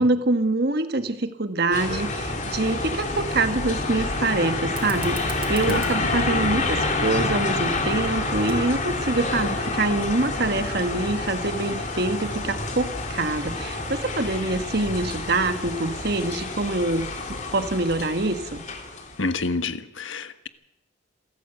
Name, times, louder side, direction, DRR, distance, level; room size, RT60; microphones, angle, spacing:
voice 1, 0.0-17.1 17.5-18.6, right 2 dB, 55° right, 9 dB, 1.4 m, -25 dB
sound 1, 1.7-19.1, left 2 dB, 40° left, 3.4 m, -28 dB
Fire, 4.6-9.6, right 5 dB, 25° right, 3.7 m, -44 dB
voice 2, 5.7-6.3 19.2-20.5, left 3 dB, 75° left, 10 dB, 1.4 m, -29 dB
27.0 x 14.0 x 8.1 m, 0.91 s
head